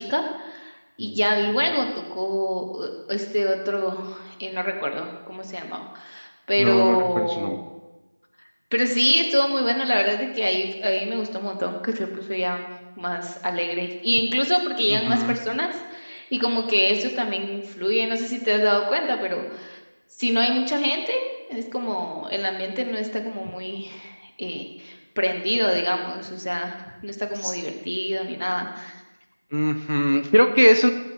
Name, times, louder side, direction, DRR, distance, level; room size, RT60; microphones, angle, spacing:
voice 1, 0.0-7.6 8.7-12.6 13.0-19.8 20.2-29.0, equal, 35° left, 3 dB, 1.2 m, -25 dB
voice 2, 6.6-7.6 14.9-15.4 27.3-27.6 29.5-30.9, equal, 65° left, 7 dB, 0.9 m, -21 dB
19.0 x 6.7 x 4.7 m, 1.1 s
figure-of-eight pair, 180°, 0 cm